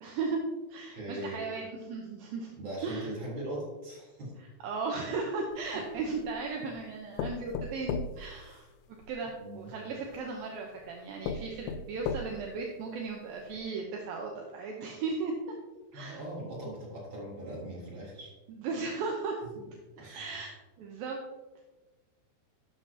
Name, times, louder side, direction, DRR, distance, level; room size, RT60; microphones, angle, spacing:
voice 1, 0.0-0.4 0.7-2.5 2.8-3.1 4.4-8.7 9.1-15.3 15.9-16.2 18.5-19.4 19.7-21.2, right 4 dB, 75° right, 0 dB, 2.2 m, -36 dB
voice 2, 0.9-1.4 2.6-4.3 9.4-9.7 15.9-18.3 20.0-20.3, right 1 dB, 30° right, -5 dB, 3.7 m, -40 dB
sound 1, 5.5-6.4 7.2-9.1 10.1-10.2 10.8-10.9 11.2-12.6 13.1-13.2 13.5-13.6, left 5 dB, 85° left, 3.0 m, -36 dB
12.0 x 7.8 x 2.8 m, 1.2 s
omnidirectional pair, 5.2 m